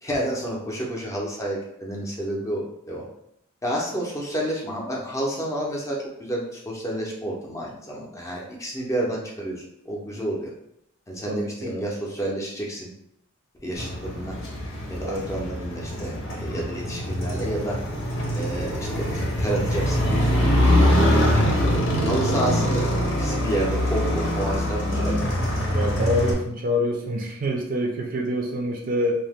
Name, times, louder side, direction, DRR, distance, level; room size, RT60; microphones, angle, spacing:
voice 1, 0.0-3.1 3.6-10.5 11.1-12.9 13.6-14.4 14.9-17.8 18.3-20.5 21.8-22.9 23.2-25.2, right 1 dB, 15° left, -3 dB, 0.5 m, -30 dB
voice 2, 11.3-11.8 15.0-15.3 24.9-25.4 25.7-29.1, equal, 45° right, 1 dB, 0.4 m, -26 dB
Motorcycle, 13.8-26.3, equal, 70° left, 0.8 m, -23 dB
2.7 x 2.0 x 3.4 m, 0.77 s
head